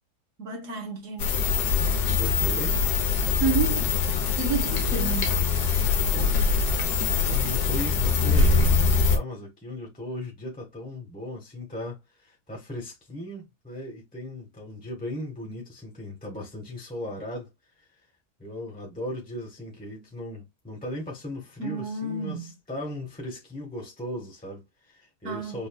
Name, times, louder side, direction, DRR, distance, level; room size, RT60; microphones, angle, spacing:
voice 1, 0.4-1.3 3.4-3.9 4.4-5.3 21.6-22.5 25.2-25.6, right 5 dB, 50° right, 1.5 m, -30 dB
sound 1, 1.2-9.2, left 5 dB, 90° left, 1.5 m, -23 dB
voice 2, 1.9-2.8 5.6-6.4 7.3-17.5 17.8-17.9 18.4-25.7, left 1 dB, 5° left, 1.1 m, -37 dB
5.4 x 2.6 x 2.3 m
omnidirectional pair, 1.7 m